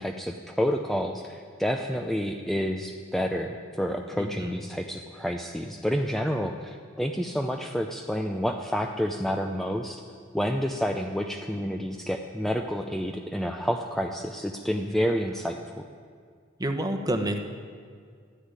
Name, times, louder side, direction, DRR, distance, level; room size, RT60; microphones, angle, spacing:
voice 1, 0.0-10.0 10.3-15.8, equal, ahead, 3 dB, 0.6 m, -29 dB
voice 2, 4.2-4.5 16.6-17.4, right 1 dB, 20° right, 5 dB, 1.1 m, -28 dB
12.5 x 10.0 x 9.7 m, 2.1 s
head